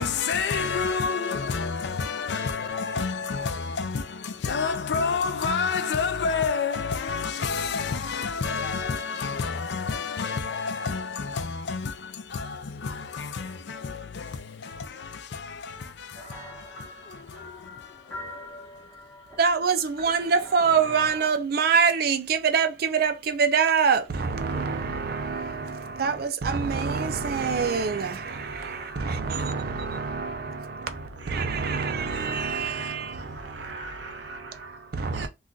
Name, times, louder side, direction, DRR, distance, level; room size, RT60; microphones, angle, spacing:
voice 1, 0.0-18.7, left 5 dB, 65° left, 0.4 m, -30 dB
sound 1, 16.1-21.3, left 1 dB, 15° left, 1.0 m, -43 dB
voice 2, 19.4-33.7 34.9-35.3, right 5 dB, 55° right, 0.4 m, -25 dB
voice 3, 28.3-30.1 30.8-35.3, right 3 dB, 80° right, 0.8 m, -41 dB
2.4 x 2.3 x 3.7 m
head